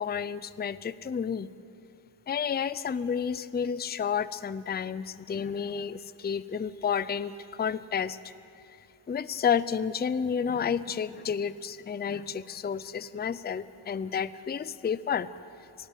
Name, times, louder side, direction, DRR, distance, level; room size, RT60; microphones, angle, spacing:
voice 1, 0.0-1.5 2.3-8.3 9.1-15.3, left 7 dB, 25° left, 16 dB, 0.4 m, -31 dB
24.5 x 16.5 x 8.2 m, 2.5 s
wide cardioid pair, 145°, 45 cm